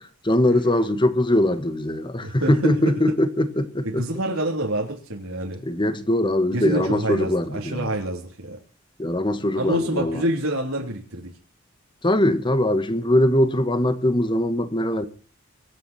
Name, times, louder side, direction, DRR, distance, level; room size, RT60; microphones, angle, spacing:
voice 1, 0.2-4.1 5.6-7.9 9.0-10.2 12.0-15.1, left 1 dB, 25° left, 1.7 m, -21 dB
voice 2, 2.2-3.0 3.8-5.6 6.5-8.6 9.5-11.3, right 1 dB, 85° right, 3.3 m, -27 dB
24.0 x 9.8 x 4.4 m
head